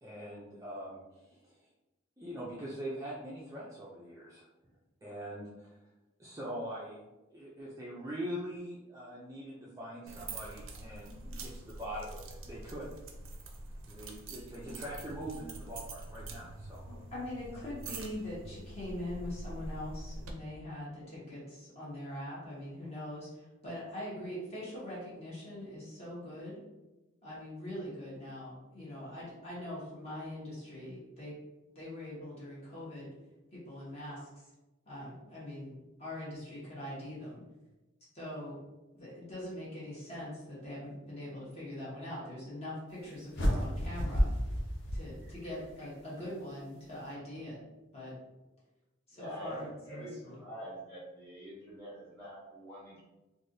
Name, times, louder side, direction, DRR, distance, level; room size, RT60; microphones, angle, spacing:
voice 1, 0.0-1.5 2.2-4.5 5.0-5.7 6.2-7.0 7.3-12.9 13.8-16.9 45.2-45.3, equal, 15° right, -6 dB, 0.4 m, -43 dB
sound 1, 10.1-20.3, right 2 dB, 80° right, 0.5 m, -45 dB
voice 2, 16.9-26.6 27.2-31.3 31.7-33.1 33.5-34.3 34.8-35.7 36.0-37.4 38.1-38.6 38.9-44.3 44.9-47.6 47.9-48.1 49.1-50.4, left 1 dB, 30° left, -7 dB, 1.2 m, -42 dB
sound 2, 43.3-45.7, equal, 60° left, 0.6 m, -31 dB
voice 3, 49.1-53.0, equal, 10° left, -9 dB, 1.4 m, -45 dB
3.3 x 2.5 x 2.6 m, 1.0 s
head